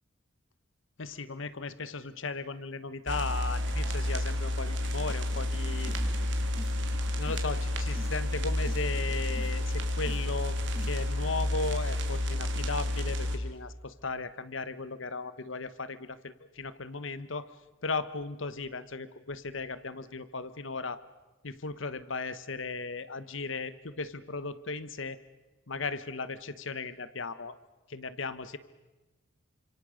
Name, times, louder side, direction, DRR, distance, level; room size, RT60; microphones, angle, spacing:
voice 1, 1.0-5.9 7.2-17.5 17.8-21.0 21.4-25.2 25.7-27.6 27.9-28.6, left 3 dB, 75° left, 14 dB, 1.3 m, -36 dB
sound 1, 3.1-13.4, left 1 dB, 65° right, 3.1 m, -30 dB
sound 2, 5.5-6.1 6.4-7.5 7.8-8.9 9.2-10.2 10.6-11.0, equal, 5° right, 1.7 m, -45 dB
29.0 x 26.0 x 6.6 m, 1.1 s
head